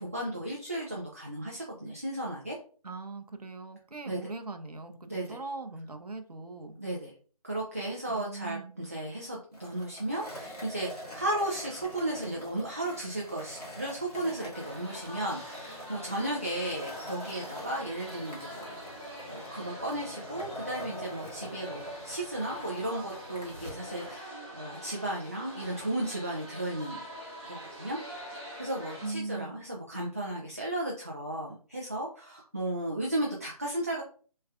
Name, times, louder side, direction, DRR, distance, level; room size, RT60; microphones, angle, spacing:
voice 1, 0.0-2.6 4.1-4.2 5.1-5.4 6.8-7.1 7.4-27.0 27.4-28.0 28.2-34.0, right 1 dB, 25° right, -3 dB, 0.4 m, -35 dB
voice 2, 2.8-6.8 8.1-8.8 29.0-29.6, right 3 dB, 80° right, 6 dB, 0.6 m, -40 dB
Skateboard, 9.5-24.1, equal, 85° left, 1.5 m, -46 dB
sound 1, 14.5-29.1, equal, 10° right, 0.9 m, -44 dB
3.3 x 3.1 x 2.4 m, 0.41 s
figure-of-eight pair, 160°, 19 cm